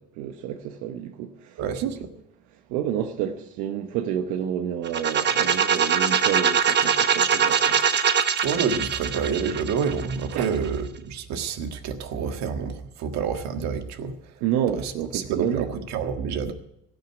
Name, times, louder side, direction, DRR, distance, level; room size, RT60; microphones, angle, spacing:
voice 1, 0.0-1.9 2.7-7.8 10.3-10.6 14.4-15.7, right 9 dB, 90° right, 1.0 m, -29 dB
sound 1, 4.8-10.7, right 7 dB, 35° right, 1.0 m, -22 dB
voice 2, 8.4-14.1 14.7-16.5, right 6 dB, 65° right, 1.7 m, -28 dB
17.0 x 6.6 x 9.8 m
cardioid pair, 125°, 30 cm